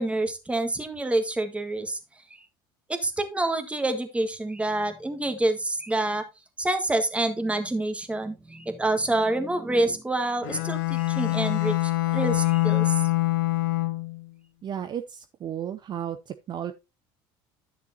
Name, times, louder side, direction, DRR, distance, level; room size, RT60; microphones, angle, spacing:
voice 1, 0.0-2.0 2.9-6.3 6.6-13.0, right 2 dB, 10° right, 1.6 m, -27 dB
Bowed string instrument, 10.4-14.3, left 19 dB, 90° left, 0.9 m, -25 dB
voice 2, 14.6-16.7, right 9 dB, 40° right, 0.6 m, -34 dB
10.5 x 6.7 x 2.8 m
supercardioid pair, 95°, 11 cm